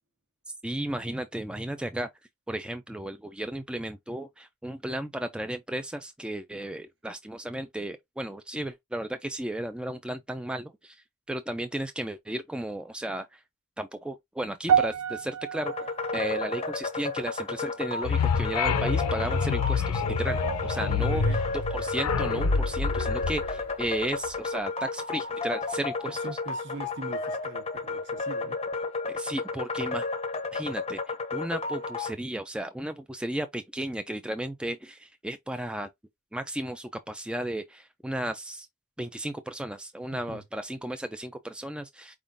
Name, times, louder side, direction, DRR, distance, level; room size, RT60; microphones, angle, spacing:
voice 1, 0.6-2.1 2.5-13.4 13.8-15.7 16.1-26.2 29.1-30.1 30.5-35.9 36.3-38.7 39.0-42.2, right 1 dB, 5° right, 0.3 m, -34 dB
sound 1, 14.7-19.1 19.3-19.7 20.4-20.5, right 8 dB, 75° right, 0.4 m, -31 dB
sound 2, 15.6-32.1, left 4 dB, 30° left, 0.6 m, -33 dB
sound 3, 18.0-24.3, left 5 dB, 85° left, 0.6 m, -27 dB
voice 2, 21.0-21.4 26.1-28.6 40.1-40.4, right 2 dB, 55° right, 1.1 m, -41 dB
4.6 x 3.6 x 2.5 m
head